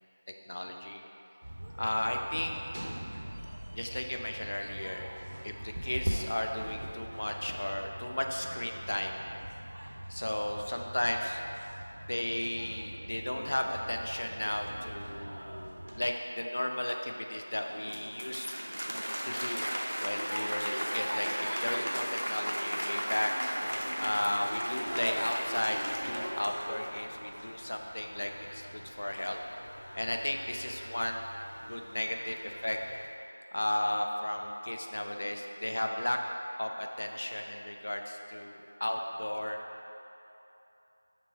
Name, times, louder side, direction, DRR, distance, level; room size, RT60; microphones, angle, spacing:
voice 1, 0.5-1.0 1.8-2.6 3.7-5.1 5.4-9.2 10.1-11.4 12.1-18.5 19.2-19.7 20.0-23.3 24.0-29.4 29.9-31.3 31.7-32.8 33.5-36.2 36.6-39.6, left 1 dB, 50° left, 3 dB, 0.5 m, -34 dB
sound 1, 1.4-16.1, right 1 dB, 55° right, 0.6 m, -42 dB
Applause, 17.7-27.2, equal, 90° right, 0.8 m, -35 dB
sound 2, 23.6-33.1, equal, 90° left, 1.0 m, -48 dB
6.0 x 4.2 x 4.6 m, 2.9 s
figure-of-eight pair, 175°, 0 cm